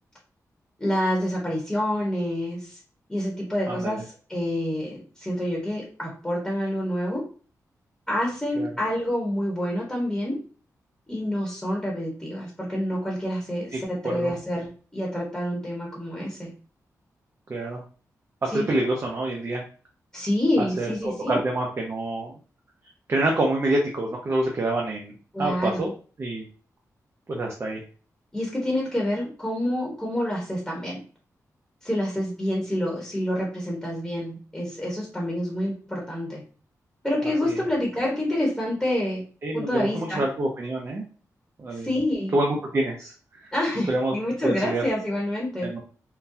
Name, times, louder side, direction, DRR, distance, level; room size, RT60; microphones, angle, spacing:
voice 1, 0.8-2.8 3.1-7.2 8.1-10.4 11.1-16.5 18.5-18.6 20.1-21.4 25.3-25.9 28.3-31.0 31.8-36.4 37.0-39.2 39.5-40.2 41.7-42.4 43.5-45.7, left 1 dB, 10° left, -2 dB, 1.1 m, -27 dB
voice 2, 3.7-4.0 8.6-8.7 13.7-14.3 17.5-17.8 18.4-19.6 20.8-22.3 23.1-25.1 25.4-25.9 26.2-26.4 27.3-27.8 37.4-37.6 39.4-41.0 41.6-42.0 42.3-43.1 43.4-43.5 43.9-44.1 44.4-44.8 45.6-45.8, right 2 dB, 40° right, -1 dB, 0.6 m, -27 dB
3.8 x 2.2 x 2.7 m, 0.39 s
cardioid pair, 90°, 6 cm